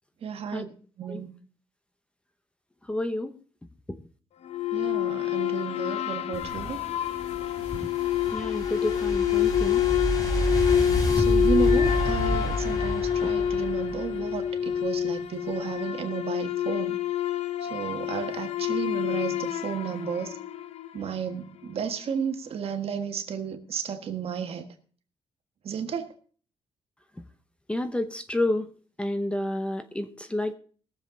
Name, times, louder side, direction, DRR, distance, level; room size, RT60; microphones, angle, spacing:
voice 1, 0.2-0.7 1.0-1.3 4.7-6.8 11.1-17.0 17.6-20.4 20.9-24.6 25.6-26.1, right 7 dB, 60° right, 6 dB, 1.6 m, -33 dB
voice 2, 2.9-3.4 7.8-7.9 8.3-9.9 27.7-28.7 29.0-30.5, left 1 dB, 10° left, 10 dB, 0.9 m, -30 dB
sound 1, 4.5-21.1, left 10 dB, 70° left, 0.7 m, -27 dB
sound 2, 6.3-11.4, left 2 dB, 85° left, 4.6 m, -45 dB
sound 3, 7.1-14.4, equal, 30° left, 4.2 m, -29 dB
20.5 x 7.4 x 3.9 m, 0.41 s
cardioid pair, 125°, 11 cm